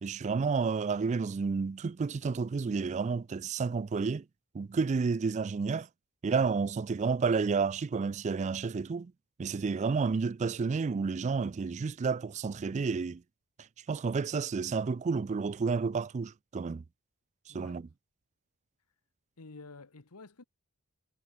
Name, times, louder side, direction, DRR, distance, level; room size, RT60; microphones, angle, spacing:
voice 1, 0.0-4.2 4.5-5.9 6.2-9.1 9.4-13.2 13.9-16.8 17.5-17.9, right 5 dB, 30° right, 0.3 m, -30 dB
voice 2, 17.5-17.8 19.4-20.5, left 3 dB, 85° left, 1.3 m, -50 dB
head